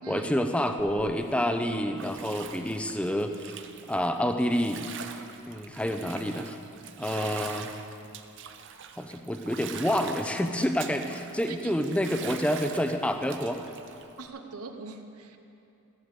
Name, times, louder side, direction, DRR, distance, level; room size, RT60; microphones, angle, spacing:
voice 1, 0.1-3.6 3.9-4.9 5.5-6.6 7.0-7.7 9.0-13.6, equal, 5° left, 6 dB, 0.5 m, -28 dB
Bathtub (filling or washing), 0.8-14.3, right 7 dB, 55° right, 0.6 m, -44 dB
voice 2, 11.5-11.8 12.1-12.2 14.2-15.4, right 4 dB, 80° right, 6 dB, 1.0 m, -42 dB
14.5 x 7.0 x 8.0 m, 2.7 s
head